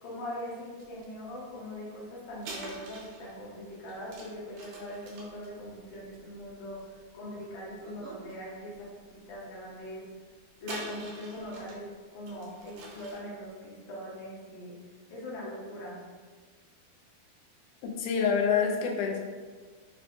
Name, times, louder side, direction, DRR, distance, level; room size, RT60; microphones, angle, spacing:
voice 1, 0.0-10.0 10.6-11.9 12.1-14.7 15.1-16.0, left 1 dB, 70° left, -6 dB, 2.3 m, -41 dB
sound 1, 0.8-1.0 2.4-7.1 7.7-8.3 8.7-8.8 10.6-11.8 12.3-13.3, right 2 dB, 75° right, 2.2 m, -45 dB
voice 2, 17.8-19.2, left 6 dB, 85° left, 1 dB, 2.4 m, -27 dB
6.5 x 2.3 x 2.5 m, 1.5 s
omnidirectional pair, 4.3 m